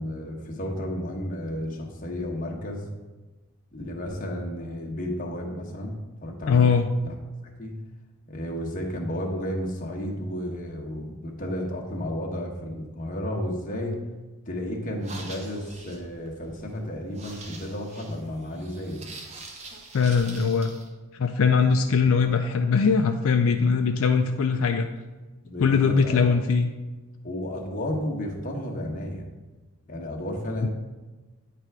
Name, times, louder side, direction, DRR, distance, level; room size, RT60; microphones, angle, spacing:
voice 1, 0.0-2.9 3.7-6.7 7.0-7.1 7.6-7.8 8.3-14.0 14.5-19.0 25.4-26.3 27.2-29.2 29.9-30.7, left 1 dB, 40° left, 0 dB, 1.0 m, -32 dB
voice 2, 6.5-6.9 19.9-20.7 21.2-24.9 25.6-26.7 30.6-30.7, left 5 dB, 75° left, 5 dB, 0.4 m, -21 dB
sound 1, 14.9-20.9, right 3 dB, 30° right, 0.7 m, -44 dB
9.0 x 3.4 x 4.7 m, 1.2 s
head